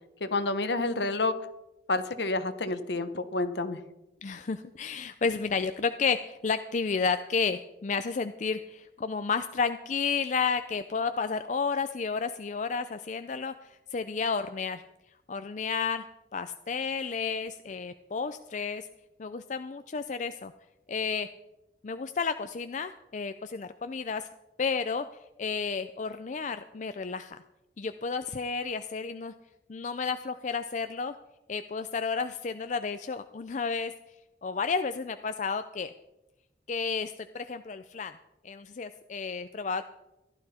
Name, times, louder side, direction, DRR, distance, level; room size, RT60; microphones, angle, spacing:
voice 1, 0.2-1.3 1.9-3.8, left 2 dB, 65° left, 11 dB, 1.0 m, -29 dB
voice 2, 4.2-14.8 15.3-16.0 16.3-18.9 19.2-20.5 20.9-21.3 21.8-24.3 24.6-25.1 25.4-27.4 27.8-29.3 29.7-31.2 31.5-33.9 34.4-35.9 36.7-38.1 38.4-39.8, left 5 dB, 40° left, 10 dB, 0.4 m, -31 dB
15.5 x 12.0 x 4.3 m, 0.95 s
head